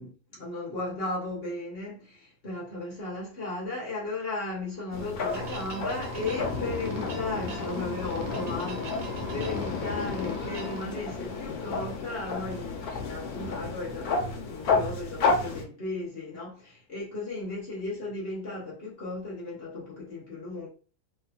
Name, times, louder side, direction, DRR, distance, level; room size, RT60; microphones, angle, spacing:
voice 1, 0.0-20.7, left 2 dB, 40° left, 1.0 m, -36 dB
sound 1, 4.9-15.6, left 4 dB, 60° left, 1.1 m, -31 dB
sound 2, 5.3-10.8, right 3 dB, 90° right, 0.6 m, -43 dB
3.3 x 3.0 x 2.3 m
omnidirectional pair, 2.0 m